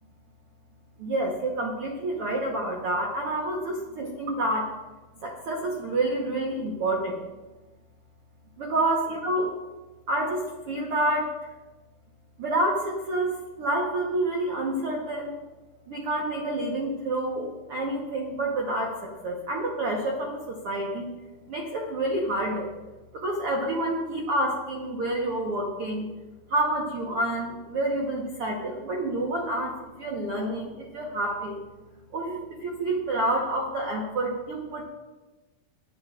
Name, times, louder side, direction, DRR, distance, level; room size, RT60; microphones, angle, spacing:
voice 1, 1.0-4.7 5.2-7.2 8.6-9.5 10.1-11.5 12.4-15.4 15.9-21.1 21.5-22.7 23.1-26.1 26.5-31.6 32.1-34.8, right 1 dB, 90° right, -1 dB, 1.2 m, -28 dB
20.5 x 8.7 x 2.5 m, 1.2 s
omnidirectional pair, 4.4 m